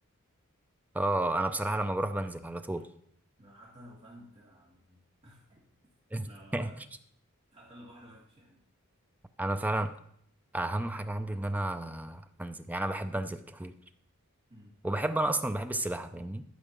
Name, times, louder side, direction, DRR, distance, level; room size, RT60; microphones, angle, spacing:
voice 1, 0.9-2.9 6.1-6.3 6.5-6.7 9.4-9.9 10.5-13.7 14.8-16.4, right 1 dB, 5° right, 9 dB, 0.4 m, -31 dB
voice 2, 3.4-5.6 6.2-6.8 7.5-8.6 14.5-14.8, equal, 30° right, -5 dB, 2.1 m, -53 dB
12.5 x 5.0 x 6.6 m, 0.69 s
head